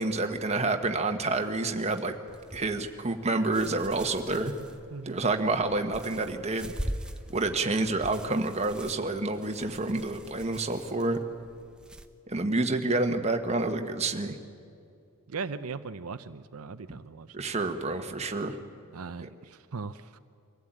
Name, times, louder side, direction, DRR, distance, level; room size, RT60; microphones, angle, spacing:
voice 1, 0.0-2.2 2.5-4.5 5.0-6.7 7.3-11.2 12.3-14.3 16.9-17.0 17.3-18.6 19.2-19.3, right 2 dB, 30° right, 5 dB, 1.3 m, -28 dB
sound 1, 2.3-12.1, equal, 5° right, 0.7 m, -43 dB
voice 2, 15.3-17.3 18.9-20.2, right 4 dB, 75° right, 10 dB, 0.6 m, -38 dB
24.0 x 15.5 x 9.0 m, 2.4 s
head